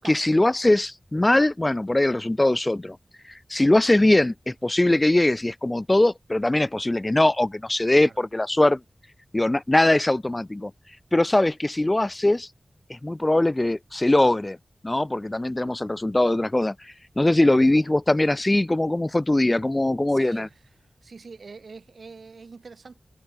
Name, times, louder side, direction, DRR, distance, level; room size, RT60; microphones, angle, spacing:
voice 1, 0.0-3.0 3.5-8.8 9.3-10.7 11.1-12.5 12.9-14.6 14.8-20.5, left 1 dB, 25° left, 0.3 m, -21 dB
voice 2, 20.1-20.5 21.0-23.0, right 4 dB, 70° right, 4.8 m, -44 dB
wide cardioid pair, 60°, 0 cm